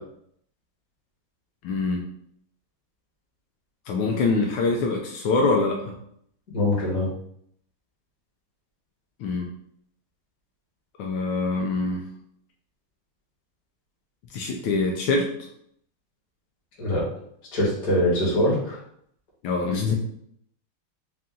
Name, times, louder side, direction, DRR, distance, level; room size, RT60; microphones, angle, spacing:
voice 1, 1.6-2.0 3.9-5.9 9.2-9.5 11.0-12.0 14.3-15.3 19.4-19.9, left 3 dB, 75° left, 0 dB, 1.4 m, -24 dB
voice 2, 6.5-7.1 16.8-17.0 17.5-18.8, left 1 dB, 40° left, -7 dB, 1.8 m, -23 dB
4.3 x 2.5 x 3.7 m, 0.69 s
omnidirectional pair, 2.4 m